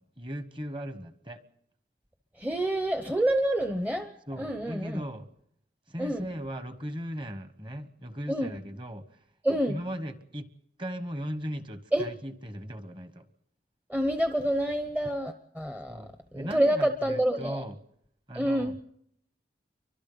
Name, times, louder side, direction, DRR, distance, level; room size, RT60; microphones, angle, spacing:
voice 1, 0.0-1.4 4.3-5.3 5.9-9.2 9.7-10.5 10.8-13.3 15.9-17.7 18.3-18.8, equal, 25° right, 10 dB, 1.2 m, -38 dB
voice 2, 2.4-5.0 6.0-6.3 8.3-8.5 9.4-9.8 11.9-12.1 13.9-16.0 16.3-17.6 18.3-18.8, right 1 dB, 10° right, 7 dB, 0.7 m, -28 dB
29.5 x 24.0 x 4.0 m, 0.71 s
head